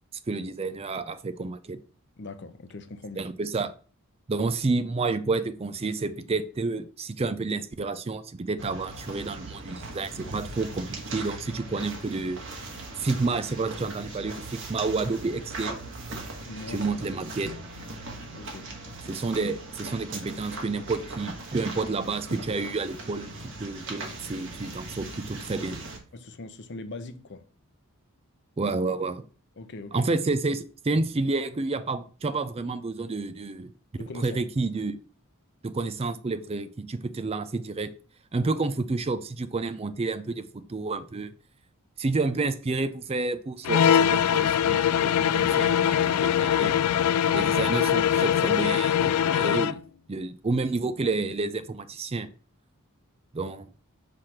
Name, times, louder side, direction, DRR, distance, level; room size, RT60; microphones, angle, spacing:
voice 1, 0.3-1.8 3.2-3.7 4.3-12.4 13.0-15.8 16.7-17.5 19.1-23.3 23.6-25.8 28.6-29.2 29.9-33.7 34.0-35.0 35.6-37.9 38.3-41.3 42.0-46.7 47.3-49.8 50.1-52.3 53.3-53.7, right 3 dB, 25° right, 0.4 m, -30 dB
voice 2, 2.2-3.3 16.4-17.1 18.3-18.8 26.1-27.4 29.6-30.1 34.0-34.4, left 2 dB, 50° left, 0.6 m, -41 dB
sound 1, 8.6-26.0, right 2 dB, 55° right, 1.6 m, -39 dB
sound 2, 43.6-49.8, left 9 dB, 90° left, 0.3 m, -22 dB
5.8 x 3.3 x 5.8 m
head